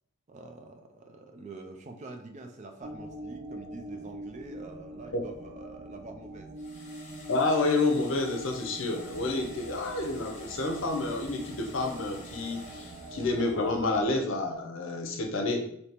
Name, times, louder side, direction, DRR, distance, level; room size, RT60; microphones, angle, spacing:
voice 1, 0.3-6.5, right 2 dB, 35° right, 5 dB, 0.4 m, -45 dB
sound 1, 2.8-13.7, right 1 dB, 55° right, 0.8 m, -44 dB
sound 2, 6.6-13.9, left 3 dB, 35° left, 0.8 m, -51 dB
voice 2, 7.3-15.7, left 2 dB, 60° left, 3 dB, 0.6 m, -29 dB
sound 3, 9.0-14.1, right 1 dB, 10° left, 1.2 m, -51 dB
3.3 x 2.8 x 2.9 m, 0.71 s
head